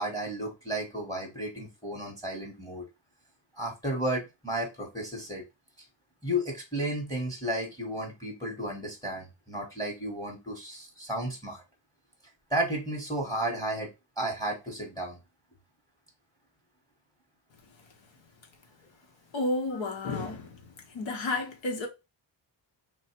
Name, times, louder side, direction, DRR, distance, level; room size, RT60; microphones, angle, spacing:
voice 1, 0.0-2.8 3.6-5.4 6.2-11.6 12.5-13.9 14.2-15.2 19.7-19.8, right 1 dB, 10° left, 0.9 m, -33 dB
voice 2, 19.3-21.9, left 2 dB, 90° left, 1.1 m, -32 dB
3.1 x 2.2 x 4.3 m
wide cardioid pair, 150°, 45 cm